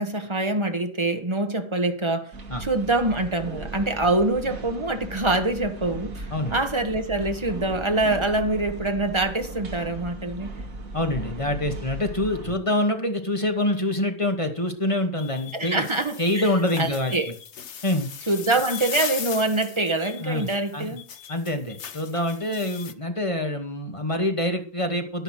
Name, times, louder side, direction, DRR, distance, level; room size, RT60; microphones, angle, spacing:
voice 1, 0.0-2.3 2.6-10.5 15.5-16.5 16.8-17.3 18.3-21.0, right 2 dB, 20° right, 1.6 m, -25 dB
sound 1, 2.3-12.5, right 2 dB, 70° right, 2.6 m, -37 dB
voice 2, 10.9-15.8 16.2-17.1 17.8-18.1 20.2-21.0 21.3-25.2, left 1 dB, 20° left, 2.0 m, -26 dB
sound 2, 15.2-22.9, left 8 dB, 55° left, 1.1 m, -37 dB
11.0 x 11.0 x 6.2 m
omnidirectional pair, 1.5 m